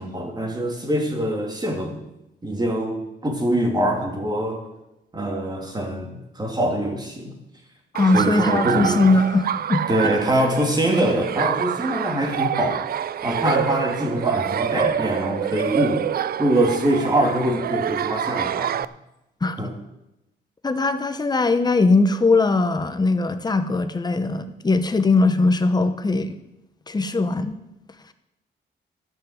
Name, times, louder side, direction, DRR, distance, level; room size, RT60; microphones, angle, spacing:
voice 1, 0.0-2.0 2.4-4.6 5.1-7.4 8.1-9.1 9.9-12.8 13.2-16.1 16.4-18.8 19.6-19.7, right 1 dB, 20° right, 2 dB, 2.7 m, -24 dB
voice 2, 7.9-9.8 19.4-19.6 20.6-26.4 26.9-27.6, left 3 dB, 20° left, 9 dB, 1.0 m, -20 dB
Laughter, 7.9-18.8, right 9 dB, 55° right, 0.4 m, -26 dB
13.0 x 6.1 x 8.0 m, 0.91 s
cardioid pair, 110°, 19 cm